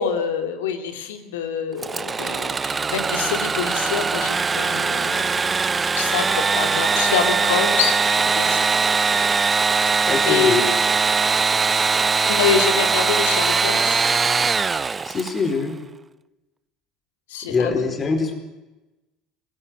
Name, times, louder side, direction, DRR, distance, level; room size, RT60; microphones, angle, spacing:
voice 1, 0.0-8.8 10.2-10.5 12.3-14.0 17.3-17.9, left 7 dB, 75° left, 6 dB, 2.7 m, -26 dB
Engine / Sawing, 1.8-15.5, right 5 dB, 25° right, 0.7 m, -21 dB
voice 2, 10.1-10.6 15.0-15.8 17.5-18.4, left 4 dB, 35° left, 6 dB, 4.5 m, -23 dB
25.0 x 17.0 x 7.6 m, 1.1 s
hypercardioid pair, 70°, 0 cm